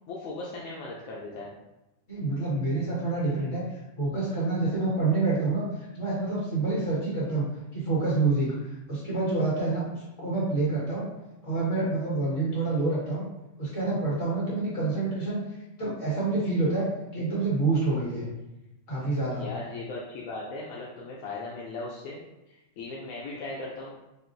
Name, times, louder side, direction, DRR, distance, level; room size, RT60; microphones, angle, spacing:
voice 1, 0.1-1.5 19.4-22.2 22.5-23.9, left 2 dB, 90° left, -4 dB, 1.1 m, -38 dB
voice 2, 2.1-3.6 4.0-7.5 7.7-11.1 11.4-13.3 13.6-15.4 15.8-16.9 17.1-18.3 18.9-19.5, right 3 dB, 65° left, -8 dB, 2.1 m, -27 dB
5.4 x 2.5 x 2.6 m, 0.96 s
omnidirectional pair, 1.4 m